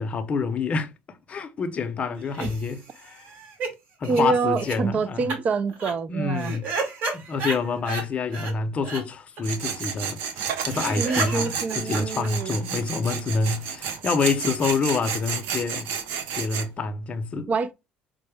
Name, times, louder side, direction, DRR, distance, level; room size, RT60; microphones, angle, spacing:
voice 1, 0.0-3.2 4.0-5.3 6.1-6.7 7.1-15.9 16.3-17.5, left 4 dB, 35° left, 0.6 m, -27 dB
sound 1, 2.2-3.7 4.0-4.2 4.6-4.8 5.3-5.4 5.7-5.9 6.4-8.0 8.3-8.5 8.8-9.0 9.4-9.5 9.7-9.8 10.0-10.1 10.4-10.5 10.7-12.8, right 3 dB, 55° right, 1.5 m, -32 dB
voice 2, 4.1-6.5 11.0-12.6 17.5-17.7, right 4 dB, 40° right, 0.3 m, -26 dB
Tools, 9.4-16.7, right 7 dB, 80° right, 0.6 m, -31 dB
4.4 x 2.0 x 3.3 m
cardioid pair, 100°, 4 cm